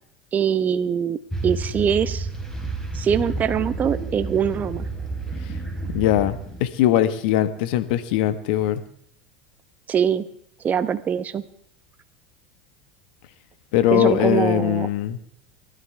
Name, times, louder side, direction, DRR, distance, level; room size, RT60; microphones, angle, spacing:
voice 1, 0.3-1.2 1.4-2.3 2.9-4.9 9.9-10.2 10.6-11.4 13.9-14.9, right 8 dB, 30° right, 10 dB, 1.1 m, -23 dB
sound 1, 1.3-6.7, right 2 dB, 10° left, 4.7 m, -30 dB
voice 2, 5.9-8.8 13.7-15.2, left 12 dB, 70° left, 11 dB, 1.5 m, -21 dB
30.0 x 12.5 x 3.5 m, 0.66 s
hypercardioid pair, 95°, 5 cm